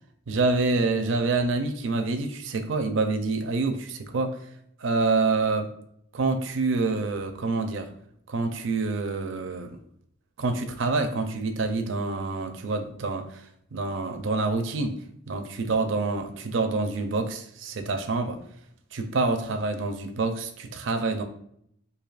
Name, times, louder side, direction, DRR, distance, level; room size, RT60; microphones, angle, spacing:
voice 1, 0.3-4.4 4.8-5.7 6.1-7.9 8.3-9.7 10.4-15.0 15.3-18.4 18.9-21.2, right 3 dB, 70° right, 6 dB, 0.5 m, -27 dB
4.7 x 2.7 x 2.4 m, 0.71 s
head